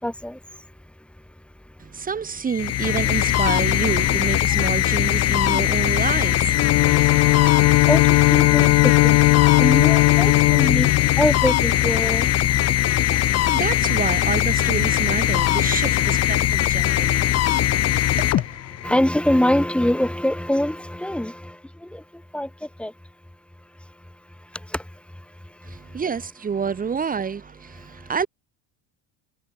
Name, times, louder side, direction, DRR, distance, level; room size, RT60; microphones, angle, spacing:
voice 1, 0.0-0.4 6.6-10.9 11.2-12.3 18.8-21.5 21.9-22.0 22.3-22.5 22.8-22.9, left 1 dB, 5° left, 6.2 m, -24 dB
voice 2, 1.8-7.1 7.5-7.6 13.5-18.6 25.6-28.3, right 6 dB, 20° right, 4.8 m, -29 dB
sound 1, 2.5-19.0, left 13 dB, 35° left, 2.2 m, -21 dB
Bowed string instrument, 6.4-12.1, left 23 dB, 55° left, 1.3 m, -18 dB
cardioid pair, 160°, 41 cm